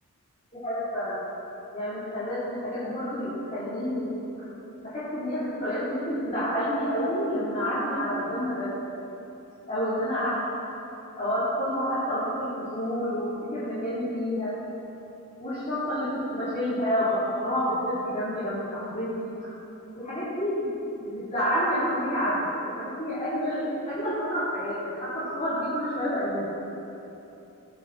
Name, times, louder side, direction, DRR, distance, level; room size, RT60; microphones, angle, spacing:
voice 1, 0.5-1.2 1.7-4.5 4.8-8.7 9.7-10.3 11.2-14.5 15.4-19.5 19.9-20.7 21.0-26.6, equal, 30° left, -13 dB, 3.6 m, -29 dB
21.0 x 8.8 x 4.3 m, 3.0 s
head